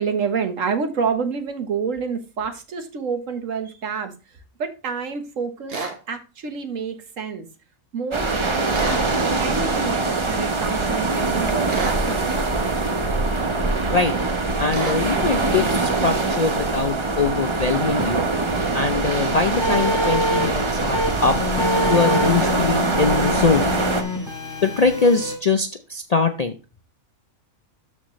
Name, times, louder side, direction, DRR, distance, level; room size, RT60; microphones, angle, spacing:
voice 1, 0.0-4.1 4.6-5.8 6.1-7.5 7.9-9.0 9.4-12.4, right 5 dB, 75° right, 1.5 m, -28 dB
sound 1, 5.7-6.0 8.7-9.1 11.7-12.0 14.7-15.0, right 4 dB, 50° right, 1.3 m, -28 dB
sound 2, 8.1-24.0, right 3 dB, 25° right, 0.7 m, -23 dB
voice 2, 14.6-18.2 18.7-21.4 21.9-23.7 24.6-26.5, left 4 dB, 50° left, 0.5 m, -22 dB
sound 3, 19.6-25.4, left 1 dB, 5° left, 5.1 m, -25 dB
12.5 x 4.3 x 3.1 m
omnidirectional pair, 1.4 m